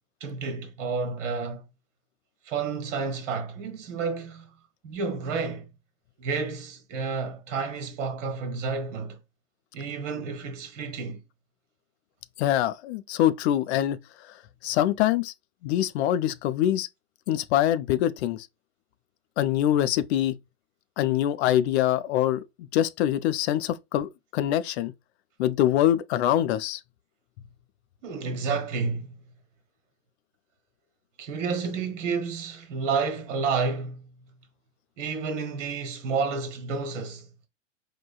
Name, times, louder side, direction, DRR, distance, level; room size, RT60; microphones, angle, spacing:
voice 1, 0.2-1.6 2.4-4.5 4.8-5.6 6.2-9.2 9.7-11.2 28.0-29.1 31.2-34.0 35.0-37.3, right 5 dB, 65° right, 1.2 m, -30 dB
voice 2, 12.4-14.0 14.6-15.3 15.6-16.9 17.3-18.5 19.4-20.3 21.0-24.9 25.4-26.8, left 12 dB, 60° left, 0.5 m, -24 dB
4.7 x 2.2 x 2.3 m
hypercardioid pair, 100°, 38 cm